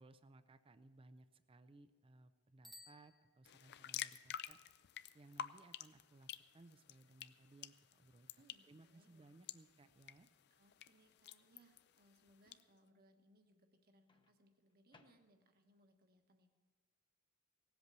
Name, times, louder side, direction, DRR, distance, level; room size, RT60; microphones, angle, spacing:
voice 1, 0.0-4.6 5.1-6.3 6.5-8.3 8.7-10.3, right 2 dB, 25° right, 11 dB, 0.4 m, -63 dB
Bicycle bell, 2.6-3.9, left 1 dB, ahead, 1.2 m, -61 dB
sound 1, 3.4-12.6, left 10 dB, 50° left, 0.4 m, -51 dB
voice 2, 8.3-9.5 10.5-16.5, right 1 dB, 45° right, 6 dB, 1.3 m, -71 dB
Microwave oven, 14.1-15.7, left 3 dB, 20° left, 0.8 m, -73 dB
17.5 x 8.0 x 6.7 m, 1.5 s
head